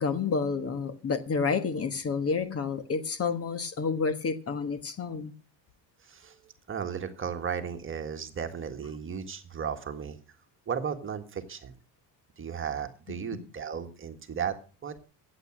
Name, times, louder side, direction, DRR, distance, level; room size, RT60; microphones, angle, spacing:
voice 1, 0.0-5.3 13.1-13.2, left 5 dB, 30° left, 11 dB, 1.3 m, -29 dB
voice 2, 6.0-6.4 6.7-10.2 10.7-11.7 12.4-14.5 14.8-15.0, right 7 dB, 25° right, 7 dB, 1.7 m, -35 dB
15.0 x 8.8 x 6.3 m, 0.36 s
cardioid pair, 125°, 47 cm